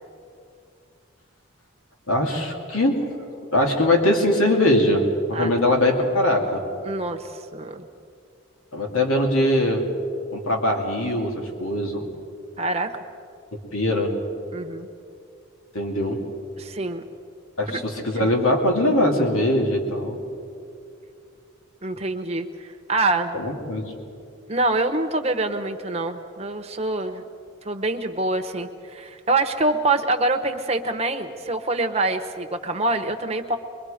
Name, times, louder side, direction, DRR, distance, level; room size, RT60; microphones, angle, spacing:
voice 1, 2.1-3.1 3.5-5.0 5.3-6.6 8.7-9.9 10.3-12.1 13.7-14.1 15.7-16.2 17.6-20.2 23.3-23.9, left 1 dB, 85° left, 1 dB, 2.8 m, -21 dB
voice 2, 6.8-7.9 12.6-12.9 14.5-14.9 16.6-17.0 18.1-18.3 21.8-23.4 24.5-27.2 27.6-33.6, right 2 dB, 30° right, 6 dB, 1.1 m, -25 dB
23.5 x 23.0 x 5.1 m, 2.5 s
head